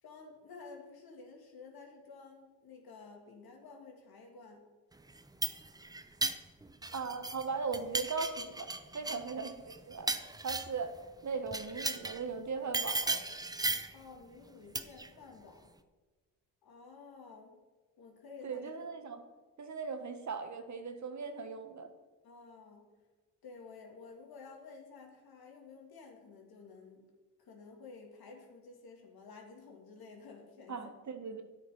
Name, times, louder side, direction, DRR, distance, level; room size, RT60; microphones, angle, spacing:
voice 1, 0.0-4.7 9.0-9.3 13.9-15.7 16.6-17.6 18.0-18.7 22.2-22.9 23.4-27.1 27.4-30.9, left 4 dB, 55° left, 2 dB, 2.5 m, -52 dB
sound 1, 5.1-7.4 7.7-10.9 11.5-12.2 12.7-14.0 14.7-15.1, right 2 dB, 10° right, 0.7 m, -36 dB
voice 2, 6.9-8.7 8.9-9.5 9.9-11.0 11.2-13.2 18.4-19.2 19.6-21.9 30.7-31.4, right 5 dB, 40° right, 8 dB, 1.3 m, -38 dB
10.0 x 8.5 x 5.3 m, 1.3 s
hypercardioid pair, 50°, 44 cm